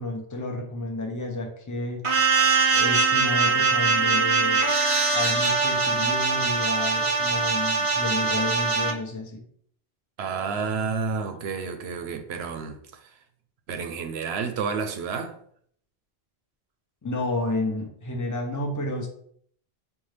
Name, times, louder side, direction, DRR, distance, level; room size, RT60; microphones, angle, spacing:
voice 1, 0.0-2.0 2.7-4.6 5.1-9.4 17.0-19.1, left 2 dB, 20° left, 0.7 m, -31 dB
sound 1, 2.0-8.9, right 4 dB, 40° right, 0.6 m, -22 dB
voice 2, 10.2-13.2 13.7-15.4, right 5 dB, 80° right, 0.8 m, -30 dB
5.3 x 2.4 x 3.2 m
omnidirectional pair, 1.1 m